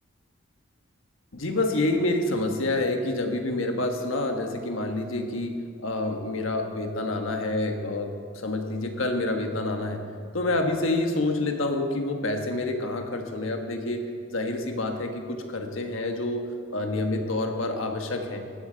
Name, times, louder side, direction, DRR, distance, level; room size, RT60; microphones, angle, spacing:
voice 1, 1.3-8.1 8.3-10.0 10.3-14.0 14.3-16.4 16.7-18.4, left 2 dB, 85° left, 4 dB, 1.3 m, -28 dB
15.0 x 11.0 x 3.9 m, 2.4 s
head